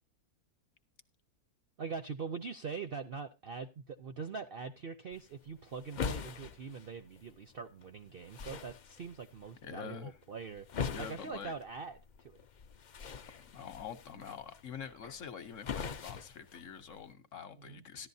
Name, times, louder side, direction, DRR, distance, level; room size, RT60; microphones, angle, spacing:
voice 1, 1.8-12.4 17.6-17.8, right 5 dB, 55° right, 0.6 m, -43 dB
sound 1, 5.1-17.1, left 6 dB, 75° left, 0.4 m, -44 dB
voice 2, 9.6-10.2 10.9-11.5 13.5-18.1, left 7 dB, 55° left, 1.1 m, -45 dB
14.5 x 11.5 x 2.7 m
omnidirectional pair, 1.6 m